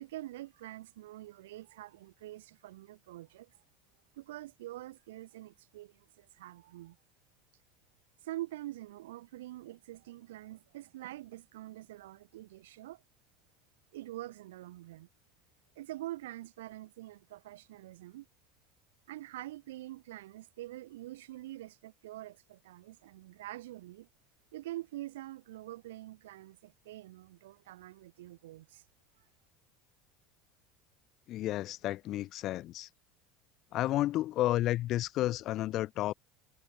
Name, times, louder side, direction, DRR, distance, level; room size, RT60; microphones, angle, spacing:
voice 1, 0.0-3.5 4.1-7.0 8.2-13.0 13.9-15.1 15.8-18.3 19.1-24.1 24.5-28.8, right 15 dB, 85° right, 4.4 m, -45 dB
voice 2, 31.3-32.9 33.7-36.1, left 15 dB, 55° left, 2.1 m, -31 dB
hypercardioid pair, 85°, 0 cm